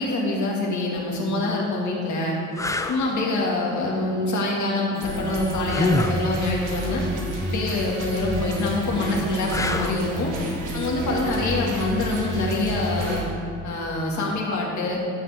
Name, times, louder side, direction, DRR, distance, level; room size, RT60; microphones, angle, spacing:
voice 1, 0.0-2.4 2.9-7.0 7.4-10.3 10.7-13.2 13.6-15.0, left 2 dB, 70° left, -2 dB, 2.1 m, -25 dB
sound 1, 1.0-1.2 1.9-2.0 2.6-3.0 5.7-6.2 9.5-10.1 13.0-13.2, left 2 dB, 10° left, 0.6 m, -25 dB
sound 2, 4.9-13.2, right 1 dB, 80° right, 1.9 m, -30 dB
15.0 x 6.0 x 3.6 m, 2.4 s
cardioid pair, 70°, 31 cm